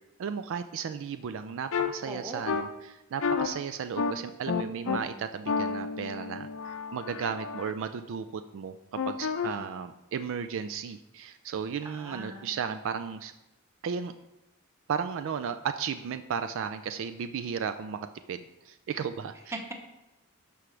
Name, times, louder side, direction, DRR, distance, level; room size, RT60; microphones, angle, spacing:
voice 1, 0.2-13.3 13.8-14.1 14.9-19.5, right 7 dB, 60° right, 10 dB, 0.3 m, -35 dB
sound 1, 1.7-1.9 2.5-2.6 3.2-3.5 4.0-4.1 4.5-5.0 5.5-7.7 9.0-9.5, left 5 dB, 65° left, 0.6 m, -30 dB
voice 2, 2.0-2.6 9.4-9.8 11.8-12.9 19.5-19.7, right 1 dB, 15° right, 3 dB, 0.9 m, -41 dB
12.5 x 4.9 x 3.3 m, 0.95 s
head